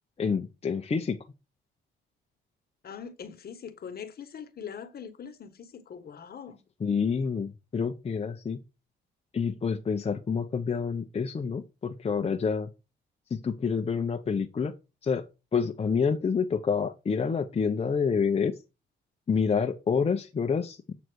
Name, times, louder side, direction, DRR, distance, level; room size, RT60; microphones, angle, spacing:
voice 1, 0.2-1.2 6.8-8.6 9.3-12.7 13.3-14.7 15.0-15.2 15.5-18.5 19.3-20.9, left 6 dB, 30° left, 0.8 m, -28 dB
voice 2, 2.8-6.6, left 7 dB, 50° left, 1.3 m, -42 dB
7.9 x 4.0 x 6.3 m
cardioid pair, 90°, 20 cm